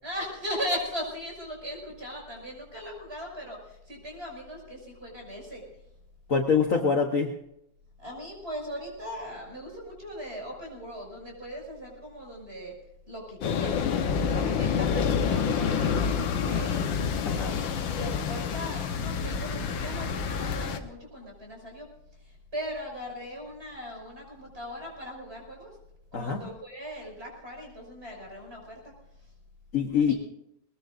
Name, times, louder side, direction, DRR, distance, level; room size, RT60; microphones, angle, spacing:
voice 1, 0.0-5.6 8.0-12.7 13.1-14.0 14.3-16.8 17.5-21.9 22.5-25.7 26.1-28.8 30.1-30.2, equal, 30° right, 0 dB, 6.5 m, -38 dB
voice 2, 6.3-7.4 17.2-17.6 26.1-26.4 29.7-30.1, left 5 dB, 50° left, 3 dB, 1.4 m, -25 dB
sound 1, 13.4-20.8, left 6 dB, 90° left, 1.8 m, -28 dB
21.5 x 20.0 x 2.6 m, 0.80 s
omnidirectional pair, 2.0 m